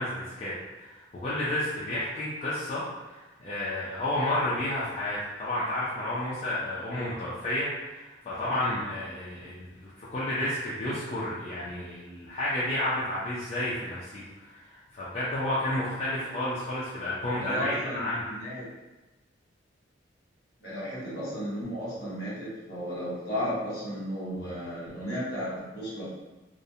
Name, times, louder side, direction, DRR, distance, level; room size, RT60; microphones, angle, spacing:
voice 1, 0.0-18.3, left 1 dB, 35° left, -9 dB, 0.4 m, -31 dB
voice 2, 17.4-18.7 20.6-26.0, equal, 55° left, -8 dB, 1.2 m, -34 dB
2.4 x 2.0 x 2.7 m, 1.1 s
head